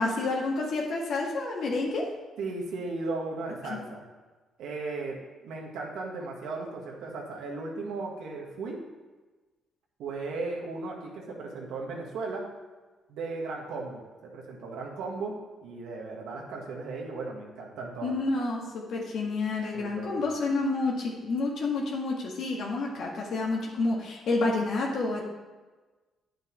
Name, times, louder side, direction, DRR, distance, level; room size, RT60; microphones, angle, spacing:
voice 1, 0.0-2.1 3.7-3.8 18.0-25.2, left 3 dB, 70° left, -1 dB, 1.8 m, -29 dB
voice 2, 2.4-4.0 4.6-5.2 5.4-8.8 10.0-12.4 13.1-18.2 19.7-20.2, right 3 dB, 85° right, -2 dB, 1.7 m, -36 dB
9.1 x 6.7 x 4.8 m, 1.2 s
cardioid pair, 90°, 0 cm